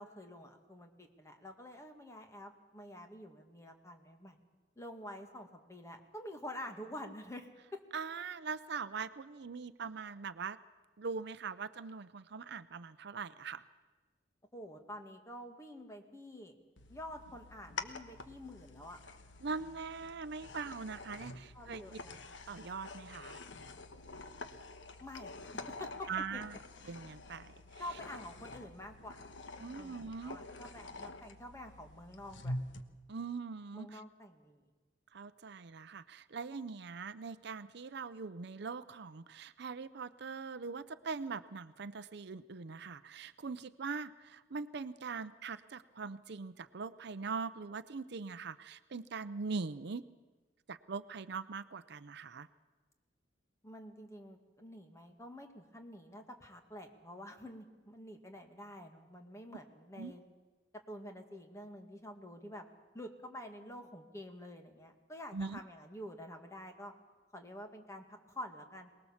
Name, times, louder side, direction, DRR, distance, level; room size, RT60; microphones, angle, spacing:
voice 1, 0.0-4.4 4.8-7.8 14.5-16.5 16.9-19.0 21.5-22.2 25.0-26.4 27.8-29.2 29.7-32.5 33.7-34.6 53.6-60.2 60.9-62.7 62.9-66.9 67.3-68.9, left 1 dB, 15° left, 4 dB, 2.0 m, -48 dB
voice 2, 7.9-10.6 11.0-13.6 19.4-21.8 22.5-23.4 26.1-26.6 26.9-27.5 29.6-30.4 33.1-34.0 35.1-50.0 50.7-52.5 60.0-60.1 65.3-65.6, right 5 dB, 65° right, 14 dB, 0.6 m, -42 dB
sound 1, 16.8-32.8, left 2 dB, 80° left, 1.2 m, -47 dB
23.0 x 19.5 x 7.2 m, 1.3 s
head